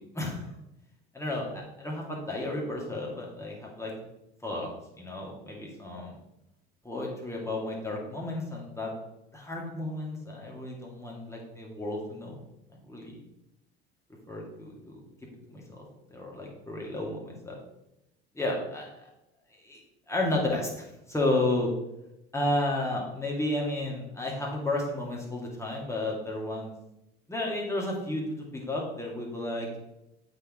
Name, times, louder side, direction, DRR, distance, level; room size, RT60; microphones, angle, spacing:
voice 1, 0.1-0.5 1.1-3.9 4.4-4.7 5.0-6.1 6.8-8.9 9.3-12.4 12.7-13.1 14.3-15.0 15.5-15.8 16.1-17.6 18.3-19.1 19.5-19.8 20.1-21.7 22.3-26.7 27.3-28.2 28.5-29.7, left 2 dB, 10° left, -2 dB, 2.2 m, -32 dB
8.1 x 4.2 x 3.7 m, 0.89 s
hypercardioid pair, 75°, 32 cm